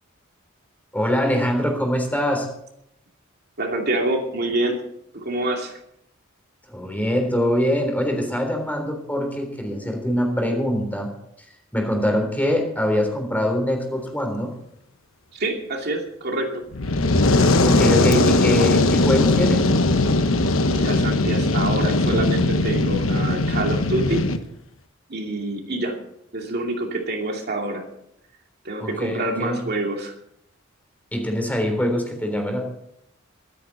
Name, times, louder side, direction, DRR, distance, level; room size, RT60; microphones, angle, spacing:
voice 1, 0.9-2.5 6.7-11.1 11.7-14.6 17.6-19.7 28.8-29.6 31.1-32.6, equal, 10° left, 3 dB, 3.4 m, -23 dB
voice 2, 3.6-4.8 5.1-5.8 15.3-16.6 20.7-24.2 25.1-26.0 26.3-27.8 28.6-30.1, right 2 dB, 55° right, 1 dB, 2.6 m, -26 dB
Fire, 16.7-24.4, left 2 dB, 85° left, 1.2 m, -19 dB
24.0 x 9.4 x 4.1 m, 0.74 s
head